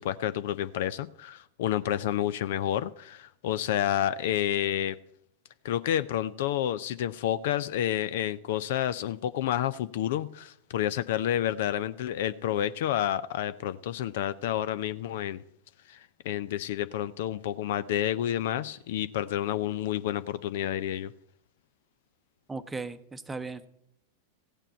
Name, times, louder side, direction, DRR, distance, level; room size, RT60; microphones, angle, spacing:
voice 1, 0.0-5.0 5.6-15.4 15.9-16.0 16.2-21.1, left 11 dB, 55° left, 15 dB, 0.5 m, -29 dB
voice 2, 22.5-23.6, right 3 dB, 10° right, 11 dB, 0.8 m, -37 dB
15.5 x 9.0 x 4.3 m, 0.72 s
figure-of-eight pair, 90°, 0 cm